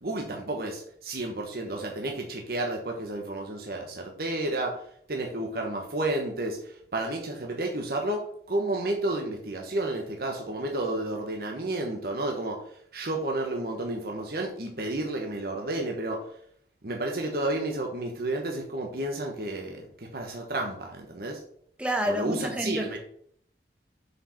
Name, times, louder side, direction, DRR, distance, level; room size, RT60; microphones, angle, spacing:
voice 1, 0.0-4.8 5.1-8.2 8.5-12.6 12.9-16.2 16.8-21.4 22.0-23.0, right 2 dB, 55° right, 1 dB, 1.1 m, -31 dB
voice 2, 21.8-23.0, equal, 5° right, 4 dB, 1.0 m, -29 dB
6.5 x 5.0 x 5.7 m, 0.64 s
head